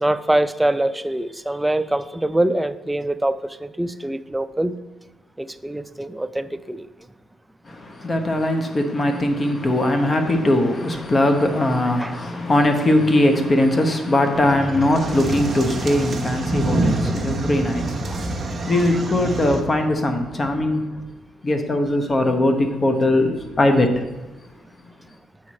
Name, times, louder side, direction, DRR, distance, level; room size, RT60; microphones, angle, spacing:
voice 1, 0.0-4.8 5.4-6.9 12.0-12.2 17.1-17.2 18.1-18.2 18.6-18.8, right 1 dB, 10° right, 0.3 m, -24 dB
voice 2, 7.7-21.0 21.4-24.0, left 1 dB, 30° left, 1.0 m, -20 dB
sound 1, 14.3-19.6, right 2 dB, 40° right, 1.0 m, -26 dB
7.2 x 4.8 x 4.2 m
cardioid pair, 90°, 0 cm